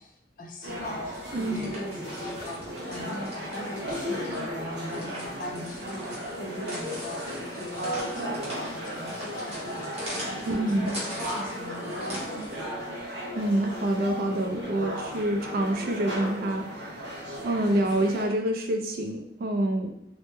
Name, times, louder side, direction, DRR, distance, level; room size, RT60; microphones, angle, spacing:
voice 1, 0.0-12.5, equal, 50° left, 2 dB, 0.4 m, -40 dB
sound 1, 0.6-18.3, equal, 70° right, 0.8 m, -35 dB
voice 2, 1.3-1.7 10.5-11.0 13.3-19.9, right 1 dB, 55° right, 4 dB, 0.3 m, -27 dB
sound 2, 1.4-12.7, equal, 40° right, 0.8 m, -42 dB
2.1 x 2.1 x 3.0 m, 0.82 s
head